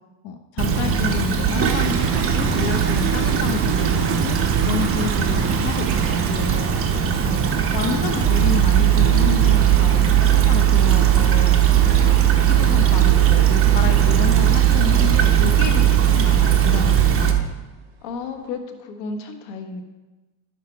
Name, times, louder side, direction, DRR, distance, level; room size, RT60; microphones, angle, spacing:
voice 1, 0.2-4.4 4.6-6.7 7.2-11.6 12.0-12.2 12.5-17.4, left 7 dB, 55° left, 5 dB, 0.8 m, -29 dB
Stream / Trickle dribble, 0.6-17.3, right 6 dB, 30° right, 0.9 m, -22 dB
sound 1, 1.5-7.0 7.3-7.6 7.9-8.0 8.4-8.5 8.9-9.1 9.4-9.5 10.1-10.2 10.4-10.6 11.1-11.4 11.7-11.8 12.2-12.4 12.7-12.8 13.2-13.3 13.9-14.3 14.6-14.9 15.3-15.4 15.8-15.9 16.6-16.8 17.2-17.7 18.1-18.2, right 6 dB, 60° right, 2.2 m, -30 dB
sound 2, 8.2-17.4, right 13 dB, 15° right, 0.4 m, -17 dB
voice 2, 18.0-19.8, left 4 dB, 85° left, 5 dB, 1.5 m, -32 dB
10.5 x 6.7 x 4.6 m, 1.2 s
cardioid pair, 135°, 46 cm